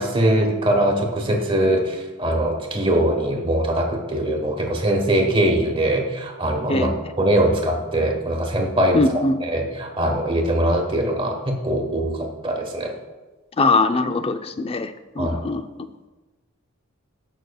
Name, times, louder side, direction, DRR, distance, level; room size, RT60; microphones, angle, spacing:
voice 1, 0.0-12.9 15.2-15.4, right 1 dB, 25° right, 2 dB, 1.2 m, -22 dB
voice 2, 8.9-9.4 13.6-15.6, left 3 dB, 25° left, 9 dB, 0.4 m, -21 dB
18.5 x 6.1 x 2.3 m, 1.2 s
head